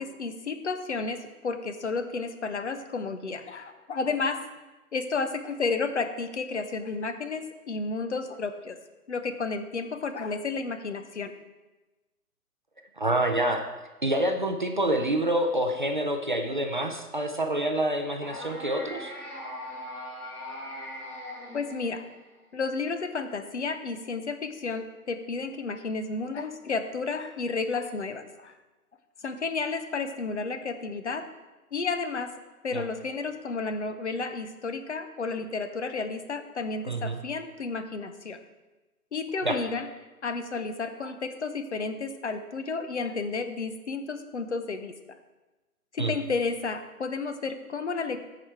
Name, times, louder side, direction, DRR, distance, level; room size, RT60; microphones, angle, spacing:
voice 1, 0.0-4.4 4.9-8.8 9.1-11.3 21.5-22.0 22.5-28.5 29.2-31.3 31.7-32.3 32.6-38.4 39.1-39.9 40.2-44.9 45.9-48.2, left 4 dB, 50° left, 9 dB, 0.7 m, -32 dB
voice 2, 13.0-13.6 14.0-19.1 32.7-32.8 36.8-37.2 39.4-39.6 46.0-46.1, right 1 dB, 35° right, 4 dB, 0.5 m, -27 dB
sound 1, 18.2-22.4, left 1 dB, 70° left, 2.6 m, -40 dB
13.5 x 5.0 x 4.5 m, 1.1 s
figure-of-eight pair, 140°, 46 cm